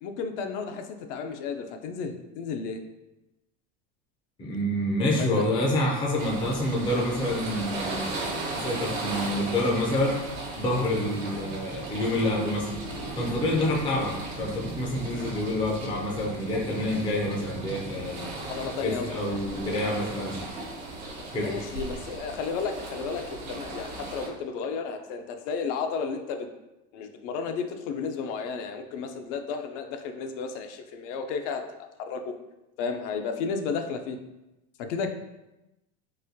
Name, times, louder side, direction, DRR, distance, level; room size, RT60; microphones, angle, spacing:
voice 1, 0.0-2.8 5.2-5.5 18.5-19.4 21.4-26.5 26.9-31.6 32.0-32.4 32.8-34.2 34.8-35.1, left 5 dB, 75° left, 5 dB, 0.5 m, -33 dB
voice 2, 4.4-10.2 10.5-12.7 13.2-18.3 18.8-20.4 21.3-21.5, left 1 dB, 15° left, -1 dB, 0.3 m, -27 dB
sound 1, 5.0-21.0, right 2 dB, 70° right, 0.6 m, -44 dB
sound 2, 6.2-24.3, right 2 dB, 85° right, 1.1 m, -37 dB
4.0 x 2.2 x 2.6 m, 0.97 s
supercardioid pair, 140°, 37 cm